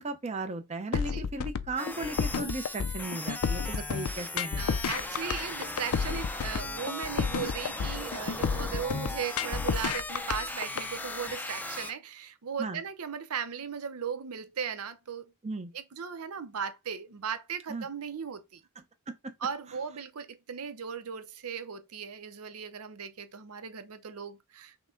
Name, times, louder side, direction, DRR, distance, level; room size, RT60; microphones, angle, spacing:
voice 1, 0.0-4.8 12.6-12.8 15.4-15.7 17.7-17.9, right 2 dB, 30° right, 0.6 m, -36 dB
sound 1, 0.9-10.9, left 6 dB, 75° left, 0.4 m, -31 dB
voice 2, 0.9-1.3 3.6-3.7 4.6-15.3 15.7-18.6 19.4-24.9, right 7 dB, 80° right, 0.6 m, -37 dB
sound 2, 1.8-11.9, left 2 dB, 10° left, 0.4 m, -38 dB
5.9 x 2.2 x 3.7 m
head